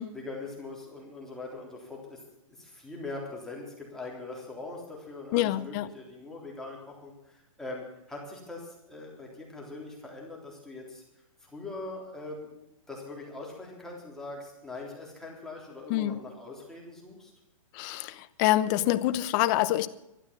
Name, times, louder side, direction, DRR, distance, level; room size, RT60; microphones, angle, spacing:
voice 1, 0.1-2.2 2.5-11.0 11.4-12.5 12.9-17.3, left 2 dB, 5° left, 3.5 m, -42 dB
voice 2, 5.3-5.9 15.9-16.2 17.7-19.9, left 14 dB, 35° left, 0.8 m, -26 dB
12.5 x 11.5 x 7.5 m
hypercardioid pair, 155°, 17 cm